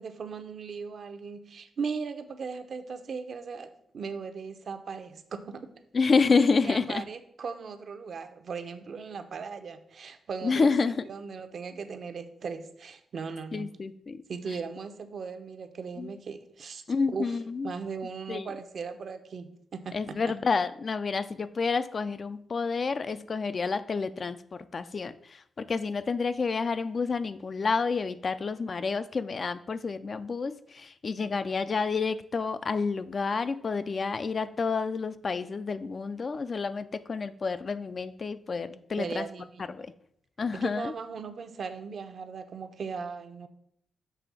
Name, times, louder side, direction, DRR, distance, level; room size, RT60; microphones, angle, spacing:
voice 1, 0.0-5.7 6.5-10.7 11.1-13.7 14.3-16.8 17.1-17.4 17.6-20.2 39.0-39.6 40.6-43.5, right 5 dB, 55° right, 8 dB, 0.7 m, -38 dB
voice 2, 5.9-7.0 10.4-11.1 13.5-14.2 16.0-16.1 16.9-17.8 18.3-18.5 19.9-39.3 39.7-39.9 40.4-40.9, left 4 dB, 40° left, 12 dB, 0.4 m, -29 dB
6.9 x 3.3 x 6.1 m, 0.66 s
cardioid pair, 100°, 0 cm